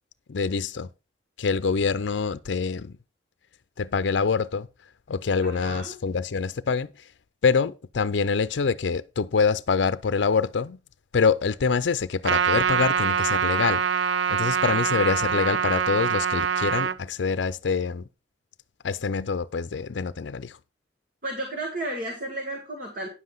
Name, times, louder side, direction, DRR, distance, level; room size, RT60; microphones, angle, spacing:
voice 1, 0.3-0.9 1.4-3.0 3.8-4.7 5.1-6.9 7.4-10.8 11.1-13.8 14.3-18.0 18.8-20.6, left 5 dB, 75° left, 0.5 m, -25 dB
voice 2, 5.4-5.9 21.2-23.1, right 1 dB, 50° right, 2.0 m, -33 dB
Trumpet, 12.2-17.0, right 7 dB, 75° right, 0.5 m, -24 dB
10.0 x 7.6 x 3.9 m
head